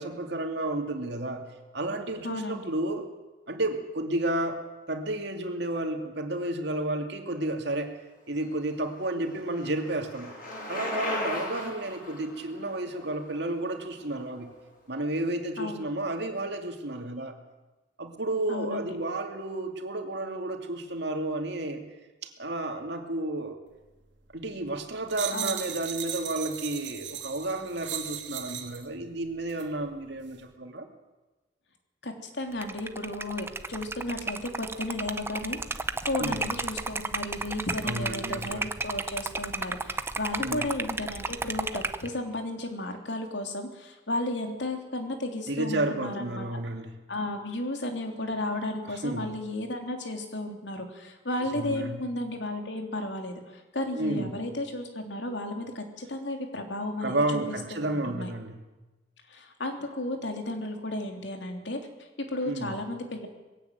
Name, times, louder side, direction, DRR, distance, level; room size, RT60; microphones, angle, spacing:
voice 1, 0.0-1.5 1.7-3.1 3.5-8.0 8.3-10.3 10.7-14.5 14.9-17.4 18.0-21.8 22.2-23.6 24.3-30.9 36.2-36.4 37.8-38.6 40.4-40.7 45.5-47.0 49.0-49.3 51.5-52.0 53.9-54.4 57.0-58.6 62.4-62.8, right 2 dB, 65° right, 4 dB, 2.6 m, -32 dB
voice 2, 2.2-2.6 15.6-15.9 18.5-18.8 25.3-25.6 32.0-35.6 36.0-46.5 47.1-58.3 59.3-61.8 62.3-63.3, left 1 dB, 75° left, 4 dB, 3.3 m, -34 dB
Bicycle, 8.4-14.4, left 1 dB, 55° left, 7.7 m, -37 dB
sound 1, 25.1-28.9 29.5-29.7, right 10 dB, 85° right, 2.2 m, -36 dB
Liquid, 32.5-42.1, right 3 dB, 15° right, 0.8 m, -33 dB
20.5 x 16.0 x 9.4 m, 1.1 s
head